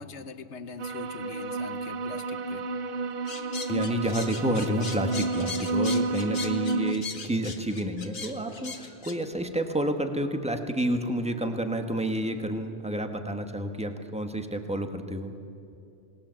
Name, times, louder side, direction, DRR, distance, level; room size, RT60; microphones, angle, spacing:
voice 1, 0.0-2.7, left 5 dB, 80° left, 11 dB, 1.4 m, -42 dB
sound 1, 0.8-6.9, right 3 dB, 55° right, 1.1 m, -30 dB
Wind instrument woodwind instrument, 2.4-6.6 7.3-12.7, right 2 dB, 80° right, 7.3 m, -51 dB
sound 2, 3.3-9.2, left 5 dB, 60° left, 1.7 m, -39 dB
voice 2, 3.7-15.3, right 1 dB, 5° right, 6 dB, 1.4 m, -29 dB
27.5 x 19.5 x 7.6 m, 2.6 s
omnidirectional pair, 1.2 m